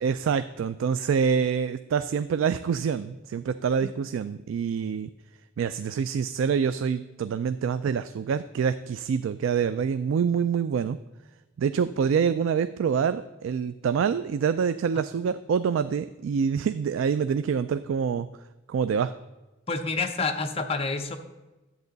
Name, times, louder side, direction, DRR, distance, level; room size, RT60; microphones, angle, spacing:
voice 1, 0.0-5.1 5.6-11.0 11.6-18.3 18.7-19.1, right 6 dB, 80° right, 12 dB, 0.3 m, -26 dB
voice 2, 19.7-21.2, left 4 dB, 30° left, 5 dB, 0.7 m, -28 dB
11.0 x 8.0 x 4.0 m, 1.1 s
head